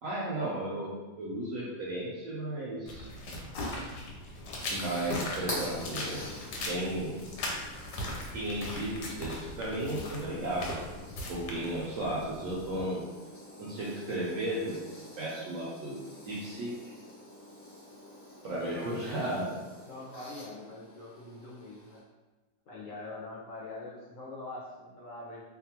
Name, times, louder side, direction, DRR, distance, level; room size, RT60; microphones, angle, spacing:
voice 1, 0.0-3.1 4.7-6.4 6.7-7.2 8.3-10.8 11.3-13.1 13.6-14.8 15.2-16.7 18.4-19.5, right 1 dB, 70° right, -5 dB, 0.8 m, -34 dB
sound 1, 2.9-12.9, left 1 dB, 80° left, 1.2 m, -39 dB
sound 2, 4.0-22.0, left 1 dB, 35° left, 0.6 m, -47 dB
voice 2, 18.6-22.0 22.7-25.4, left 2 dB, 65° left, -6 dB, 0.9 m, -44 dB
2.7 x 2.3 x 2.8 m, 1.2 s
omnidirectional pair, 1.8 m